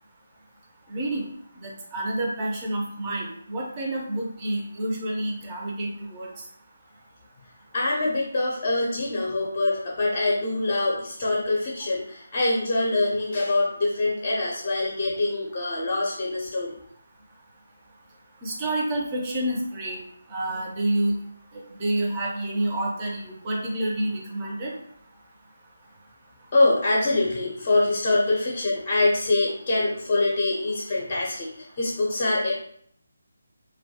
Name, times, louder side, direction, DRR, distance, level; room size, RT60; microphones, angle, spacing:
voice 1, 0.9-1.3 1.5-6.3 18.4-20.0 20.3-21.2 21.5-24.7, right 1 dB, 25° right, -2 dB, 0.6 m, -28 dB
voice 2, 7.7-16.7 26.5-32.5, left 2 dB, 30° left, -4 dB, 0.5 m, -24 dB
2.2 x 2.2 x 2.7 m, 0.65 s
figure-of-eight pair, 155°, 0 cm